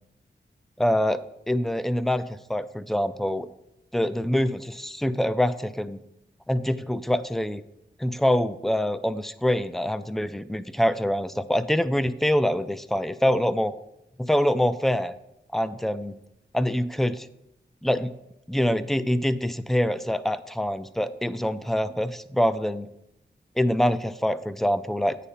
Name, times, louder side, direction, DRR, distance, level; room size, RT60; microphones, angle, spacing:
voice 1, 0.8-1.2 1.5-2.2 2.5-3.5 3.9-6.0 6.5-7.6 8.0-13.7 14.2-15.1 15.5-16.1 16.5-17.3 17.8-18.1 18.5-22.9 23.6-25.2, equal, ahead, 13 dB, 0.3 m, -25 dB
9.0 x 4.2 x 5.4 m, 0.83 s
wide cardioid pair, 105°, 19 cm